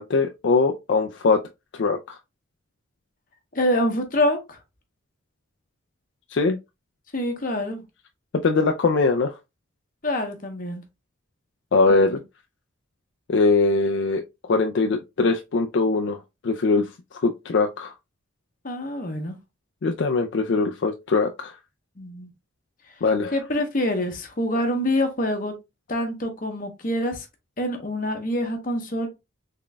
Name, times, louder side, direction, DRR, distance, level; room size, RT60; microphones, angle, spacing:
voice 1, 0.0-1.4 1.7-2.2 6.3-6.6 8.3-9.3 11.7-12.2 13.3-14.2 14.5-16.2 16.4-17.9 19.8-21.6 23.0-23.3, left 3 dB, 60° left, 0.4 m, -21 dB
voice 2, 3.5-4.6 7.1-7.8 10.0-10.8 11.9-12.0 18.6-19.4 22.0-22.3 23.3-25.5 25.9-27.3 27.6-29.1, left 1 dB, 45° left, 0.9 m, -26 dB
3.8 x 3.7 x 2.2 m
head